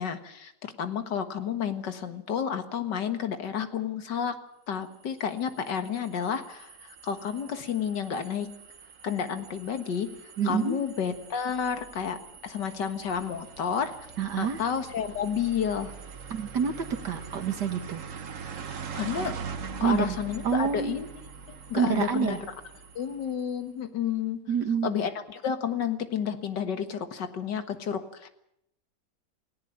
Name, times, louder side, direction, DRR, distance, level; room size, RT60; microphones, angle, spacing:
voice 1, 0.0-4.4 4.7-8.5 9.0-10.1 10.5-12.2 12.4-14.0 14.4-15.9 18.9-19.3 19.8-21.1 21.7-22.4 23.0-24.4 24.8-28.3, left 7 dB, 90° left, 9 dB, 2.2 m, -31 dB
sound 1, 5.0-23.5, right 6 dB, 50° right, 1.5 m, -43 dB
voice 2, 10.4-10.8 14.2-14.6 16.3-18.0 19.8-20.2 20.4-21.0 21.7-22.4 24.5-24.9, right 7 dB, 75° right, 7 dB, 2.2 m, -27 dB
18.5 x 17.5 x 8.9 m, 0.77 s
omnidirectional pair, 1.8 m